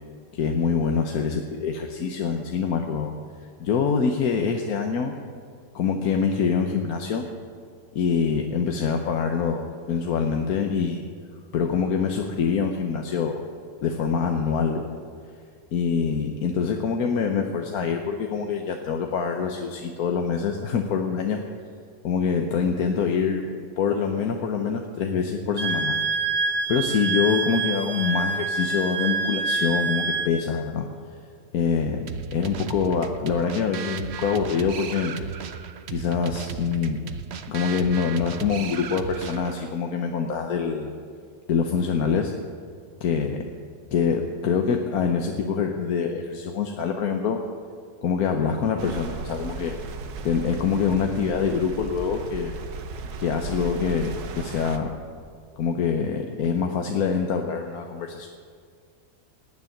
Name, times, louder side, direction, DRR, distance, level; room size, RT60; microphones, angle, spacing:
voice 1, 0.3-3.1 3.6-5.2 5.7-7.3 7.9-11.1 11.5-13.4 13.8-14.9 15.7-21.4 22.0-26.0 26.4-30.9 31.5-35.1 35.9-37.0 37.5-41.0 41.5-42.3 43.0-43.4 43.9-47.4 48.0-49.7 50.2-52.6 53.2-54.9 55.6-58.3, left 6 dB, 70° left, 3 dB, 1.4 m, -25 dB
Wind instrument woodwind instrument, 25.6-30.3, right 4 dB, 35° right, 1.2 m, -26 dB
sound 1, 32.1-39.7, right 7 dB, 55° right, 0.9 m, -35 dB
sound 2, 48.8-54.8, right 4 dB, 75° right, 1.5 m, -36 dB
18.0 x 6.8 x 9.8 m, 2.2 s
omnidirectional pair, 1.7 m